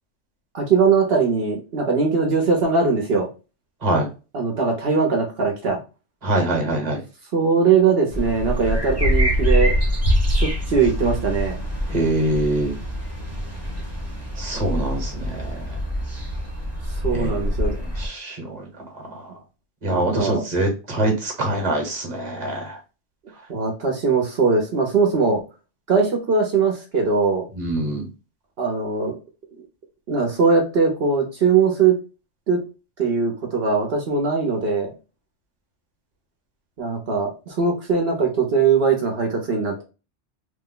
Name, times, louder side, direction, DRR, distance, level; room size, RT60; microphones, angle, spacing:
voice 1, 0.5-3.3 4.3-5.8 7.3-9.7 10.3-11.6 16.9-17.8 19.9-20.4 23.5-25.4 25.9-27.5 28.6-29.2 30.1-32.0 32.5-32.6 33.0-34.9 36.8-39.8, right 5 dB, 60° right, 1 dB, 1.0 m, -20 dB
voice 2, 6.2-7.0 11.9-12.8 14.4-15.8 17.1-17.4 17.7-18.7 18.9-19.2 19.8-22.8 27.5-28.1, right 1 dB, 40° right, 2 dB, 1.1 m, -24 dB
sound 1, 8.1-18.1, equal, 15° right, 0.8 m, -24 dB
3.0 x 2.2 x 3.7 m, 0.31 s
omnidirectional pair, 1.2 m